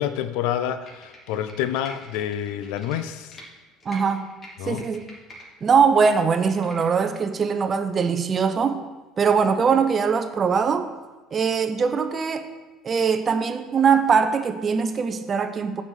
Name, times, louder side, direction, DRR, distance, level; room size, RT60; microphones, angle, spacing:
voice 1, 0.0-3.4 4.6-4.9, left 10 dB, 80° left, 11 dB, 0.6 m, -28 dB
Computer keyboard, 0.8-3.5 3.8-5.5 5.8-7.2 7.6-7.7, equal, 35° left, 2.7 m, -46 dB
voice 2, 3.9-4.3 4.7-5.0 5.6-8.8 9.2-10.9 11.3-12.5 12.8-15.8, right 6 dB, 35° right, 8 dB, 0.8 m, -21 dB
7.6 x 5.7 x 6.4 m, 1.3 s
supercardioid pair, 100°, 0 cm